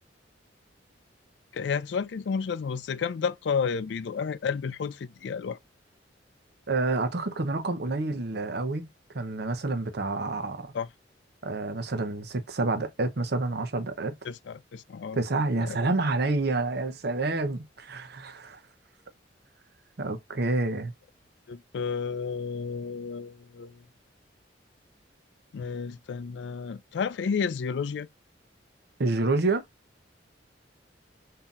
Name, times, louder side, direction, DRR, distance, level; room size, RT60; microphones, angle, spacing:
voice 1, 1.5-5.6 10.7-10.9 14.2-15.2 15.6-15.8 21.5-23.8 25.5-28.1, left 6 dB, 65° left, 0.4 m, -31 dB
voice 2, 6.7-8.9 9.1-10.7 11.4-14.1 15.1-18.6 20.0-20.9 29.0-29.6, right 3 dB, 60° right, 0.8 m, -28 dB
5.5 x 2.8 x 2.4 m
head